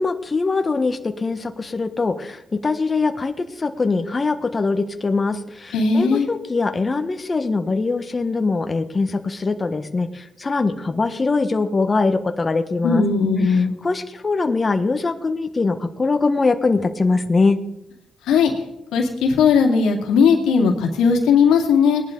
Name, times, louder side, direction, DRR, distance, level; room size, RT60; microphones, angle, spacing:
voice 1, 0.0-13.0 13.5-17.6, left 3 dB, 35° left, 7 dB, 1.4 m, -22 dB
voice 2, 5.7-6.3 12.8-13.7 18.3-18.5 18.9-22.0, left 5 dB, 90° left, 3 dB, 2.4 m, -17 dB
19.5 x 11.0 x 3.9 m, 0.85 s
cardioid pair, 70°, 0 cm